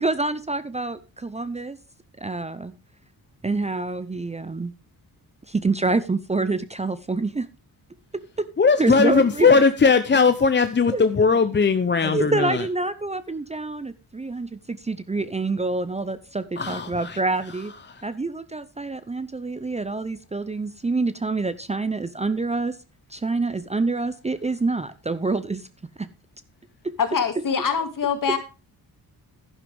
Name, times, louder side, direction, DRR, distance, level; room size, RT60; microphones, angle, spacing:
voice 1, 0.0-1.8 2.2-2.7 3.4-4.7 5.5-7.5 8.1-8.5 8.8-9.6 10.9-11.4 12.0-17.7 18.0-22.8 23.1-25.7 26.0-26.1 26.8-26.9, right 3 dB, 15° right, 14 dB, 0.6 m, -27 dB
voice 2, 8.6-12.6 16.6-17.2, left 5 dB, 30° left, 10 dB, 0.7 m, -19 dB
voice 3, 27.0-28.4, left 6 dB, 55° left, 6 dB, 2.3 m, -24 dB
11.0 x 11.0 x 3.5 m, 0.32 s
cardioid pair, 90°, 39 cm